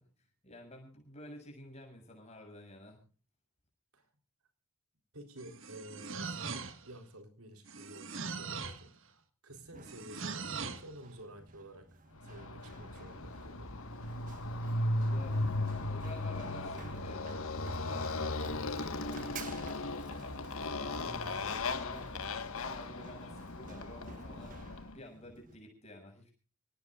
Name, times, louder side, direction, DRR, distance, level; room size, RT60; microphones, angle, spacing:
voice 1, 0.4-3.0 15.1-15.6 15.9-26.3, left 1 dB, 30° left, 3 dB, 7.0 m, -51 dB
voice 2, 5.1-13.7, right 1 dB, 80° right, 6 dB, 3.8 m, -51 dB
sound 1, 5.4-7.0 7.7-8.9 9.9-10.9, right 5 dB, 60° right, 1.7 m, -41 dB
Run, 9.5-25.6, right 4 dB, 35° right, 1.3 m, -55 dB
Motorcycle, 12.2-24.9, left 2 dB, 70° left, 1.5 m, -37 dB
28.0 x 18.5 x 2.5 m, 0.37 s
head